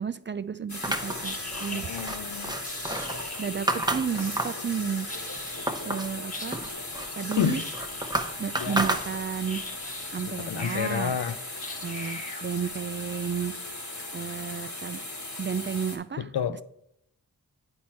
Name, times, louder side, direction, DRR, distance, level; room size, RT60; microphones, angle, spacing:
voice 1, 0.0-1.9 2.2-2.3 3.4-5.1 5.8-6.6 7.1-7.6 8.4-9.6 10.1-11.2 11.8-13.5 14.1-15.0 15.4-16.3, right 7 dB, 30° right, 0.3 m, -32 dB
sound 1, 0.7-16.0, left 2 dB, 45° left, 1.8 m, -38 dB
sound 2, 0.8-4.7 5.1-6.2 6.5-9.5, right 2 dB, 10° right, 0.8 m, -31 dB
sound 3, 1.2-2.2 2.6-3.9 4.2-4.8 5.1-5.9 6.3-10.3 10.6-12.7, left 2 dB, 20° left, 1.4 m, -42 dB
voice 2, 1.7-2.6 7.4-7.6 8.6-8.8 10.3-11.4 16.2-16.6, left 8 dB, 85° left, 0.6 m, -30 dB
8.6 x 4.3 x 4.4 m
cardioid pair, 45°, 39 cm